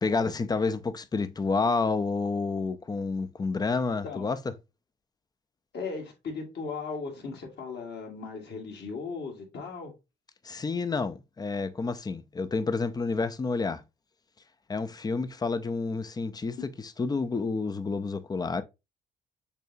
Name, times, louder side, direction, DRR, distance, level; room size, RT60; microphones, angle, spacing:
voice 1, 0.0-4.4 10.4-13.8 14.7-16.6 16.8-18.6, left 4 dB, 20° left, 0.5 m, -29 dB
voice 2, 5.7-9.9, left 4 dB, 60° left, 1.8 m, -37 dB
6.6 x 2.3 x 2.6 m
cardioid pair, 90°, 20 cm